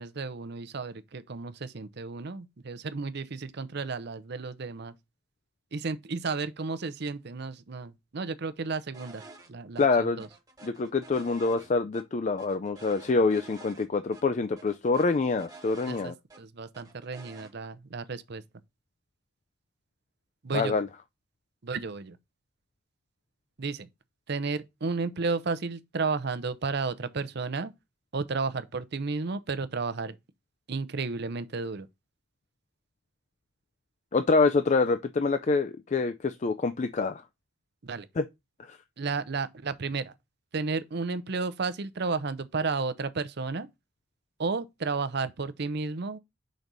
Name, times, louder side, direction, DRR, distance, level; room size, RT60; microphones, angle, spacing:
voice 1, 0.0-4.9 5.7-9.2 9.5-10.3 15.9-18.4 20.4-20.7 21.6-22.2 23.6-23.9 24.3-27.7 28.1-30.2 30.7-31.9 37.8-38.1 39.0-40.1 40.5-43.7 44.4-46.2, right 4 dB, 55° right, 0.6 m, -32 dB
sound 1, 8.9-9.5 9.7-9.9 10.2-12.0 12.4-13.9 14.1-14.2 14.6-16.4 16.7-17.5, right 3 dB, 20° right, 1.2 m, -50 dB
voice 2, 9.8-10.2 10.6-16.1 20.5-20.9 34.1-37.2 38.2-38.3 38.7-38.8, left 4 dB, 35° left, 0.4 m, -26 dB
5.2 x 4.0 x 6.0 m
head